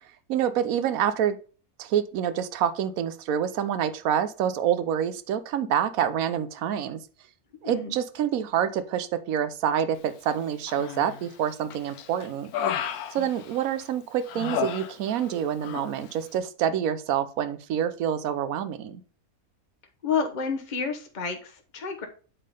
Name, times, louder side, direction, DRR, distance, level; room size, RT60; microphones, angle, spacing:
voice 1, 0.3-1.4 1.8-7.0 7.6-12.5 13.1-19.0, right 9 dB, 75° right, 11 dB, 1.1 m, -27 dB
voice 2, 7.6-8.0 20.0-22.1, left 5 dB, 35° left, 5 dB, 1.1 m, -30 dB
Human voice, 10.7-11.3 11.7-13.8 14.3-15.4 15.6-15.9, left 8 dB, 85° left, 1.2 m, -32 dB
8.4 x 3.7 x 5.2 m, 0.39 s
omnidirectional pair, 1.5 m